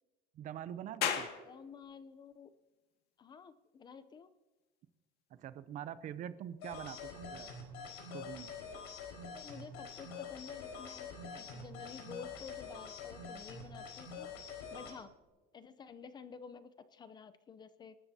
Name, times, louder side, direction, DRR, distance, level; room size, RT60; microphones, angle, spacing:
voice 1, 0.4-1.3 5.3-7.5 8.1-8.5, right 10 dB, 40° right, 14 dB, 0.6 m, -44 dB
sound 1, 1.0-14.1, left 8 dB, 55° left, 2.0 m, -47 dB
voice 2, 1.4-2.5 3.2-4.3 9.2-14.3 14.7-15.1 15.5-18.0, left 6 dB, 20° left, 13 dB, 0.6 m, -51 dB
sound 2, 6.6-14.9, left 5 dB, 90° left, 4.6 m, -46 dB
26.0 x 13.0 x 2.8 m, 1.2 s
cardioid pair, 165°, 20 cm